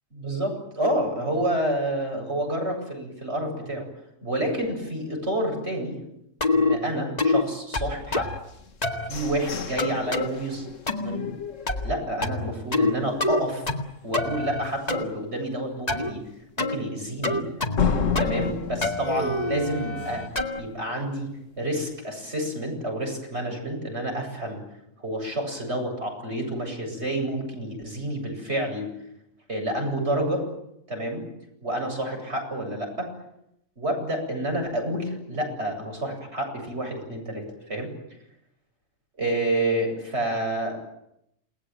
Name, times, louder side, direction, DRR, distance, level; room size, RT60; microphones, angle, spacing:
voice 1, 0.1-3.9 4.2-6.0 6.5-8.3 9.1-10.7 11.0-11.3 11.8-13.6 14.0-16.2 16.6-17.4 18.2-20.2 20.6-21.3 21.6-24.6 25.0-28.9 29.5-30.5 30.9-31.2 31.6-33.1 33.8-37.9 39.2-40.8, right 1 dB, 55° right, 2 dB, 8.4 m, -29 dB
sound 1, 6.4-6.8 7.2-7.4 7.7-8.4 8.8-9.1 9.8-10.3 10.9-11.2 11.7-12.0 12.2-12.9 13.2-13.9 14.1-15.0 15.9-16.1 16.6-16.8 17.2-17.9 18.2-18.5 18.8-20.6, left 2 dB, 30° left, 2.1 m, -26 dB
sound 2, 8.5-12.4 12.8-12.9 13.3-13.7 14.1-14.2 14.7-14.8 17.8-20.4, left 6 dB, 75° left, 1.7 m, -31 dB
29.0 x 19.5 x 9.2 m, 0.80 s
omnidirectional pair, 1.3 m